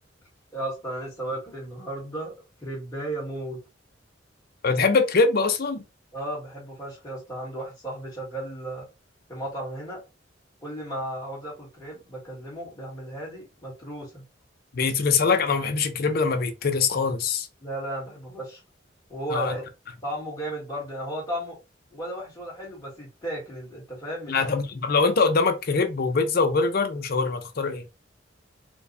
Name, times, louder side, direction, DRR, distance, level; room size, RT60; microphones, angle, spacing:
voice 1, 0.5-2.3 2.6-3.6 6.1-8.9 9.3-10.0 10.6-14.2 17.6-18.6 19.1-19.6 20.0-21.6 21.9-24.4, right 1 dB, 20° left, 1.7 m, -34 dB
voice 2, 4.6-5.8 14.7-17.5 19.3-19.6 24.3-27.8, left 4 dB, 55° left, 0.6 m, -23 dB
4.4 x 2.2 x 2.6 m
head